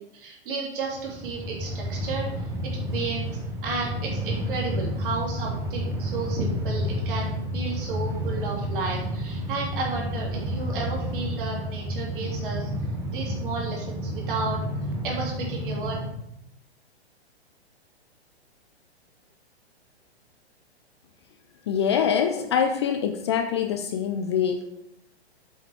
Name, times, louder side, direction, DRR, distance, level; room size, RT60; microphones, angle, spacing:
voice 1, 0.0-2.5 2.7-3.3 3.6-12.7 13.1-14.6 15.0-16.0, right 4 dB, 50° right, -3 dB, 3.3 m, -32 dB
Train, 0.9-16.1, equal, 10° right, 1.0 m, -30 dB
voice 2, 21.7-24.7, left 7 dB, 25° left, 6 dB, 0.4 m, -24 dB
7.9 x 5.6 x 4.7 m, 0.81 s
figure-of-eight pair, 115°, 33 cm